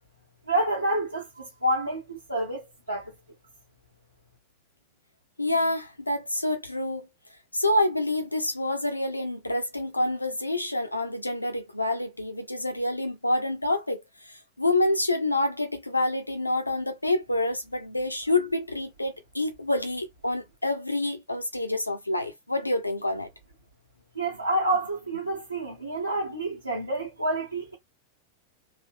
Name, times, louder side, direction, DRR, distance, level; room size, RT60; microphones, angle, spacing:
voice 1, 0.5-3.1 24.1-27.7, right 1 dB, 85° right, 1.4 m, -28 dB
voice 2, 5.4-7.1 7.5-23.3, left 2 dB, 85° left, 0.7 m, -27 dB
3.3 x 2.6 x 2.7 m
figure-of-eight pair, 90°, 0 cm